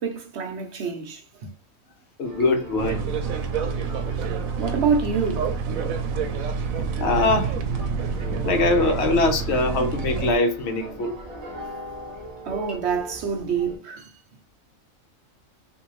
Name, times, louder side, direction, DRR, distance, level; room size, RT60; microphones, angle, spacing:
voice 1, 0.0-1.5 4.2-4.3 4.6-5.5 12.4-14.1, right 6 dB, 60° right, 0.9 m, -26 dB
voice 2, 2.2-3.0 7.0-7.5 8.5-11.1, left 2 dB, 60° left, 0.9 m, -22 dB
sound 1, 2.2-13.8, right 1 dB, 30° right, 1.0 m, -40 dB
sound 2, 2.8-10.3, right 5 dB, 85° right, 1.0 m, -28 dB
3.6 x 2.6 x 3.0 m
omnidirectional pair, 1.4 m